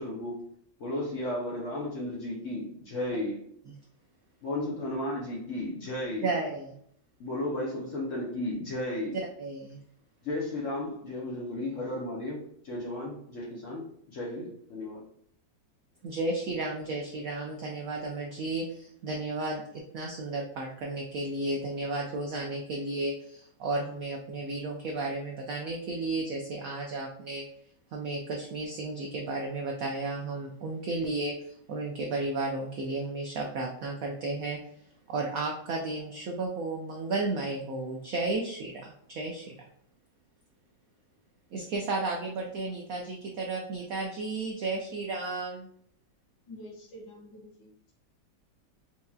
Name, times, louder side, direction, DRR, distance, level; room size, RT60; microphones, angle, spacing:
voice 1, 0.0-3.5 4.4-6.3 7.2-9.2 10.2-15.0, left 1 dB, 55° left, -3 dB, 0.9 m, -34 dB
voice 2, 6.2-6.8 9.4-9.8 16.0-27.5 27.9-34.6 35.1-39.5 41.5-45.7, right 2 dB, 75° right, 0 dB, 0.8 m, -33 dB
voice 3, 46.5-47.9, left 1 dB, 80° left, -3 dB, 1.8 m, -47 dB
4.5 x 2.7 x 2.3 m, 0.68 s
omnidirectional pair, 2.0 m